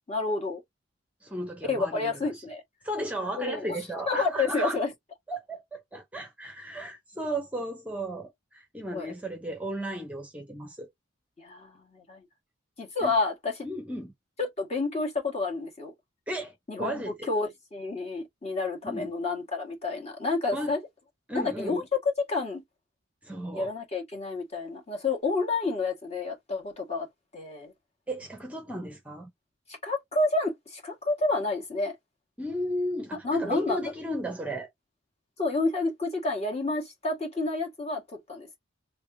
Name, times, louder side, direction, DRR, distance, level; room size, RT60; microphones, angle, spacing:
voice 1, 0.1-0.6 1.7-2.6 3.4-3.8 4.1-4.9 8.9-9.1 11.4-12.2 12.8-13.6 14.4-15.9 16.7-20.8 21.3-22.6 23.5-27.1 27.3-27.7 29.7-32.0 33.2-33.8 35.4-38.5, left 3 dB, 30° left, 1.7 m, -29 dB
voice 2, 1.2-2.4 2.8-4.8 5.3-10.9 13.0-13.1 13.6-14.1 16.3-17.3 18.8-19.1 20.5-20.7 21.3-21.8 23.2-23.7 28.1-29.3 32.4-34.7, right 1 dB, 5° right, 0.7 m, -35 dB
3.4 x 3.3 x 2.7 m
head